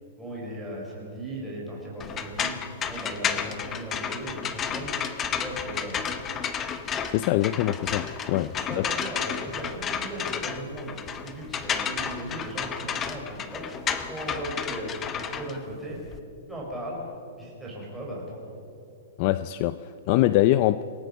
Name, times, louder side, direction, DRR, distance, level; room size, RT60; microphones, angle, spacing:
voice 1, 0.2-2.5 2.9-5.1 5.4-6.1 8.7-16.1 16.5-17.0 17.4-18.4, right 1 dB, ahead, -5 dB, 4.4 m, -37 dB
sound 1, 2.0-16.2, left 7 dB, 15° left, 0.8 m, -32 dB
voice 2, 7.1-8.9 19.2-20.8, left 15 dB, 35° left, 14 dB, 0.4 m, -24 dB
27.0 x 18.0 x 5.4 m, 2.7 s
hypercardioid pair, 170°, 0 cm